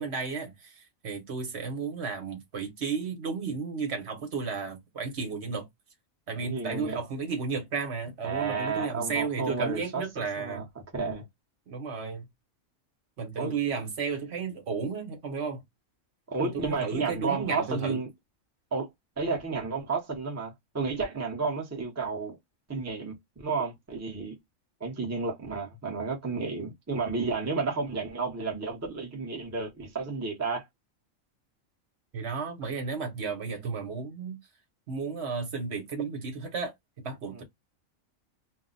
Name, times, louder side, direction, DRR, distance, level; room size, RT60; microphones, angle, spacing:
voice 1, 0.0-5.7 6.3-10.6 11.7-12.3 13.2-15.6 16.4-18.0 32.1-34.4 34.9-37.4, right 5 dB, 55° right, 1.1 m, -33 dB
voice 2, 6.3-7.0 8.2-10.6 10.9-11.2 13.4-13.5 16.3-18.1 18.7-18.9 19.2-22.4 22.7-24.3 24.8-30.7 37.3-37.4, right 4 dB, 15° right, 0.6 m, -32 dB
2.4 x 2.1 x 3.9 m
omnidirectional pair, 1.4 m